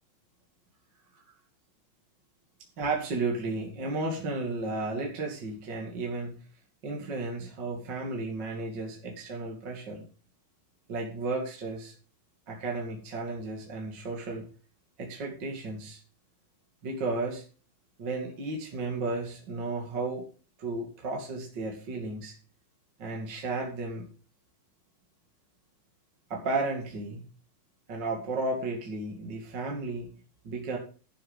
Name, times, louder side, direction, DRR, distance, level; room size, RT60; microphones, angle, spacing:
voice 1, 2.8-6.4 6.8-10.1 10.9-11.9 12.5-14.4 15.0-16.0 16.8-17.4 18.0-20.3 20.6-22.3 23.0-24.1 26.3-27.3 27.9-30.1 30.4-30.8, right 3 dB, 35° right, 0 dB, 2.7 m, -33 dB
11.5 x 7.9 x 5.6 m, 0.37 s
omnidirectional pair, 3.8 m